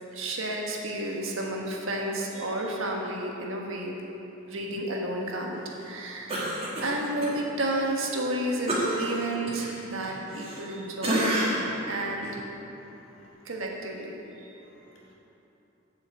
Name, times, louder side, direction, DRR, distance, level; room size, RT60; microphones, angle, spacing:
voice 1, 0.1-4.0 4.5-6.5 6.8-11.4 11.9-12.3 13.4-14.5, right 1 dB, 85° right, -1 dB, 1.4 m, -31 dB
Cough, 6.3-7.3 7.7-7.9 8.7-10.7 11.0-11.7 12.2-12.4, right 1 dB, 30° right, 1.7 m, -29 dB
voice 2, 12.8-13.5 14.6-15.1, equal, 60° left, -5 dB, 2.2 m, -55 dB
7.8 x 6.1 x 7.9 m, 3.0 s
head